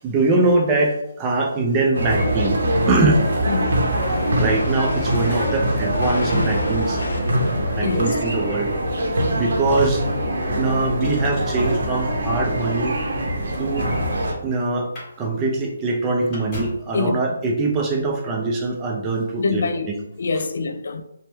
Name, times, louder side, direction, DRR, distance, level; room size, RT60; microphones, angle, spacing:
voice 1, 0.0-2.6 2.9-3.2 4.1-7.0 7.8-8.7 9.3-10.0 10.5-13.0 13.6-13.9 14.4-14.9 15.2-20.0, right 2 dB, 15° right, 0.4 m, -22 dB
sound 1, 1.9-14.3, right 1 dB, 60° right, 0.7 m, -23 dB
sound 2, 3.5-9.1, left 1 dB, 80° left, 0.7 m, -34 dB
voice 2, 3.5-3.8 7.8-8.2 16.9-17.2 19.4-21.0, left 4 dB, 60° left, 0.3 m, -25 dB
Motor vehicle (road), 11.0-12.1 12.9-14.4 14.8-15.1 15.4-15.5 15.8-16.9 18.0-18.1, equal, 15° left, 1.2 m, -34 dB
2.9 x 2.1 x 3.3 m
hypercardioid pair, 170°, 0 cm